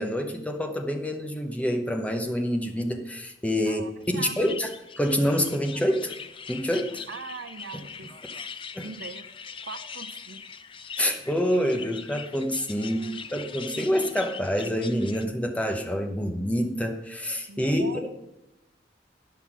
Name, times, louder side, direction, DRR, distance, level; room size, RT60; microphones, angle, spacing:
voice 1, 0.0-3.8 4.1-4.7 5.0-6.1 6.5-7.1 8.7-8.9 11.0-13.1 13.3-18.1, equal, 5° left, 4 dB, 0.9 m, -27 dB
voice 2, 3.7-4.5 7.1-8.3 8.8-9.2 9.6-10.4 12.8-13.4 13.7-13.8 17.5-18.0, right 4 dB, 65° right, 11 dB, 0.6 m, -41 dB
sound 1, 4.0-15.3, left 6 dB, 30° left, 0.4 m, -42 dB
11.0 x 5.7 x 6.0 m, 0.91 s
head